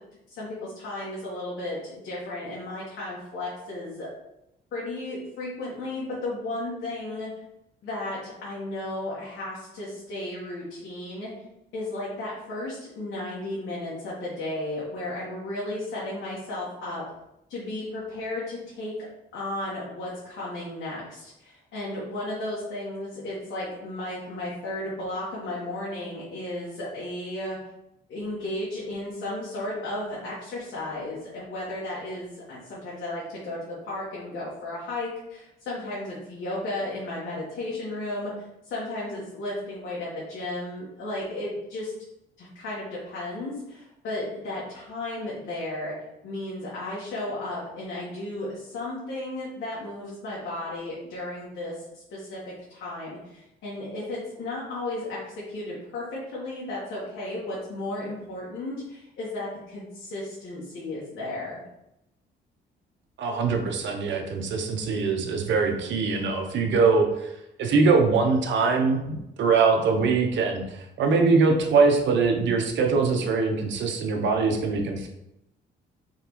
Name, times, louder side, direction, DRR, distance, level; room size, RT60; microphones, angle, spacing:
voice 1, 0.3-4.1 4.7-7.3 7.8-11.3 11.7-17.0 17.5-18.9 19.3-27.6 28.1-38.3 38.7-41.9 42.4-45.9 46.2-61.6, left 1 dB, 70° left, -7 dB, 1.3 m, -34 dB
voice 2, 63.2-67.3 67.6-75.1, right 4 dB, 70° right, 3 dB, 0.7 m, -23 dB
3.8 x 3.3 x 3.0 m, 0.86 s
cardioid pair, 90°, 20 cm